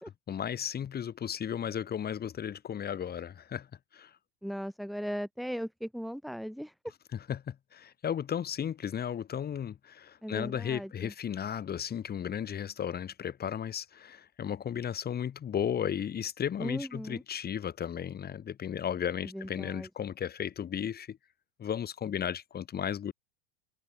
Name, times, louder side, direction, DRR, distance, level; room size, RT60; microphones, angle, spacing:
voice 1, 0.3-3.7 3.9-4.1 7.3-21.2 21.6-23.1, left 9 dB, 30° left, 5.6 m, -34 dB
voice 2, 4.4-6.7 10.2-11.1 16.6-17.2 19.2-19.9, equal, ahead, 6.7 m, -38 dB
hypercardioid pair, 105°, 31 cm